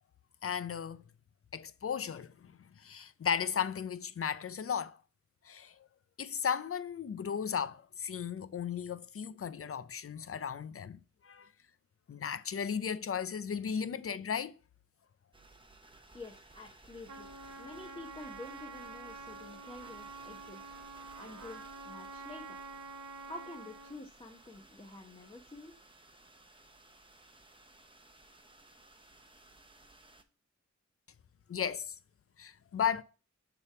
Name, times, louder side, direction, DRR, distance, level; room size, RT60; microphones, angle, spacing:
voice 1, 0.4-1.0 1.5-5.0 5.4-5.7 6.2-11.5 12.1-14.6 31.5-32.0 32.4-33.0, left 7 dB, 50° left, 0.4 m, -35 dB
sound 1, 15.3-30.2, right 2 dB, 15° right, 0.8 m, -58 dB
voice 2, 16.1-17.3 17.6-20.6 21.2-22.6 23.2-25.7, left 2 dB, 20° left, 0.9 m, -48 dB
Trumpet, 17.1-24.0, right 4 dB, 85° right, 0.9 m, -47 dB
6.9 x 3.5 x 5.7 m
wide cardioid pair, 90°, 29 cm